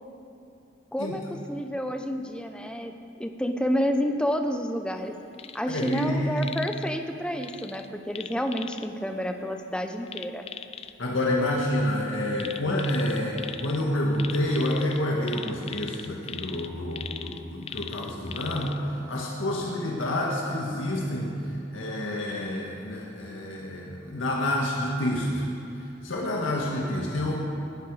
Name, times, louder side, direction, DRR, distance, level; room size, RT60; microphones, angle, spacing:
voice 1, 0.9-1.2 1.5-5.1 5.5-10.4, equal, 5° left, 6 dB, 0.8 m, -29 dB
sound 1, 5.3-6.1 6.4-6.9 7.4-8.9 10.1-10.9 12.3-13.8 14.1-18.8 19.2-19.3, left 8 dB, 30° left, 0.4 m, -39 dB
voice 2, 5.7-6.3 11.0-25.5 26.0-27.4, left 1 dB, 85° left, -2 dB, 1.9 m, -28 dB
19.5 x 11.0 x 4.9 m, 2.7 s
head